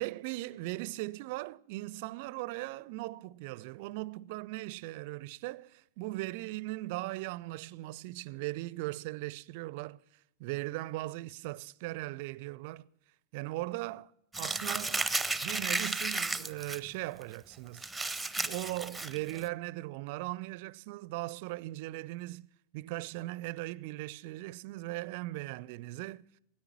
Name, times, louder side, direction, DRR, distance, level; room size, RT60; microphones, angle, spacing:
voice 1, 0.0-10.0 10.4-12.9 13.3-14.1 14.4-15.0 15.4-17.8 18.4-22.5 22.7-26.2, right 19 dB, 50° right, 0.4 m, -38 dB
Crumpling crinkling, 14.3-16.8 17.2-17.3 17.8-19.4, right 2 dB, 5° right, 0.6 m, -33 dB
17.5 x 9.7 x 5.9 m
figure-of-eight pair, 90°, 0 cm